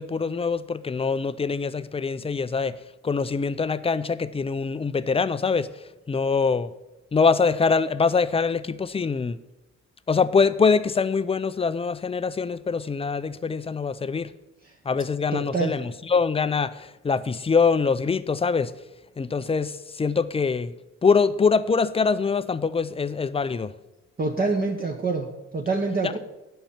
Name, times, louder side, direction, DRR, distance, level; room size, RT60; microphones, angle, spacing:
voice 1, 0.0-2.8 3.0-6.7 7.1-9.4 10.1-14.3 14.8-18.7 19.2-20.8 21.0-23.7 26.0-26.1, left 5 dB, 20° left, 0.4 m, -24 dB
voice 2, 15.3-15.7 24.2-25.3 25.5-26.2, right 3 dB, 30° right, 1.0 m, -25 dB
9.0 x 5.6 x 7.2 m
cardioid pair, 90°, 30 cm